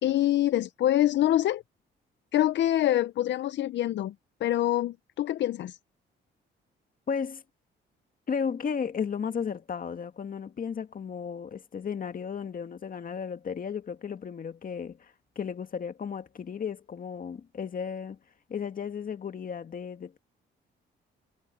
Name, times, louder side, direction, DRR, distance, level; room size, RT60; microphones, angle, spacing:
voice 1, 0.0-1.6 2.3-4.1 4.4-5.8, left 13 dB, 65° left, 0.6 m, -25 dB
voice 2, 7.1-7.4 8.3-18.2 18.5-20.2, left 6 dB, 45° left, 1.9 m, -34 dB
cardioid pair, 90°, 20 cm